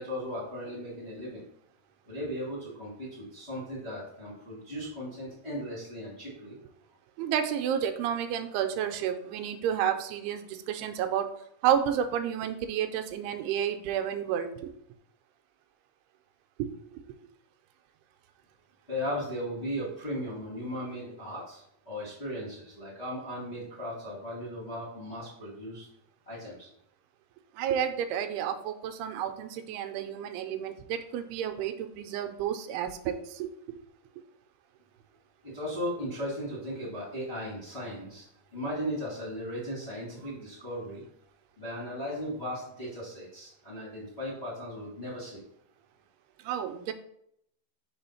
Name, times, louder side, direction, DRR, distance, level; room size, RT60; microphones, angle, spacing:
voice 1, 0.0-1.4 2.1-6.6 18.9-25.9 26.2-26.7 35.4-38.2 38.5-41.0 41.6-45.4, equal, 25° left, -7 dB, 1.5 m, -37 dB
voice 2, 7.2-11.3 11.6-14.7 16.6-16.7 27.6-33.8 46.4-46.9, right 9 dB, 85° right, 7 dB, 2.5 m, -31 dB
5.5 x 4.3 x 5.5 m, 0.74 s
omnidirectional pair, 4.6 m